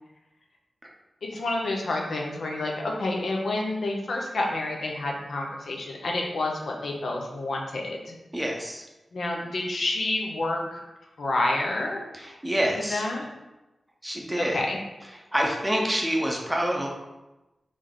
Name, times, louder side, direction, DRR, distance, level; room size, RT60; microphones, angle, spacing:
voice 1, 1.2-8.2 9.1-10.8 11.2-12.0 12.9-13.3 14.3-14.8, left 2 dB, 70° left, 0 dB, 0.7 m, -29 dB
voice 2, 8.3-8.8 12.1-13.0 14.0-14.6 15.3-16.9, equal, 10° right, -1 dB, 0.7 m, -27 dB
3.9 x 3.3 x 3.7 m, 1.0 s
wide cardioid pair, 140°, 0 cm